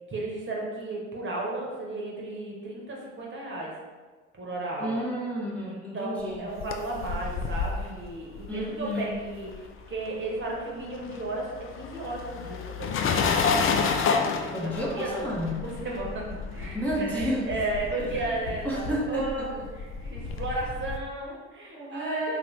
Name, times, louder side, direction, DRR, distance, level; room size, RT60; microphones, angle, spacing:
voice 1, 0.1-3.7 4.4-5.1 5.9-9.5 9.9-13.2 14.4-15.3 15.6-22.4, right 2 dB, 35° right, -3 dB, 1.0 m, -34 dB
voice 2, 4.8-6.5 8.5-9.2 14.5-15.7 16.7-17.5 18.0-18.4 18.6-19.7 21.7-22.4, equal, 5° left, -6 dB, 0.8 m, -31 dB
sound 1, 6.3-10.0 10.2-21.0, left 5 dB, 40° left, 0.4 m, -30 dB
Tap, 16.0-19.1 19.9-20.0 20.3-20.4, left 4 dB, 75° left, 1.3 m, -39 dB
3.0 x 2.6 x 3.2 m, 1.3 s
hypercardioid pair, 60°, 35 cm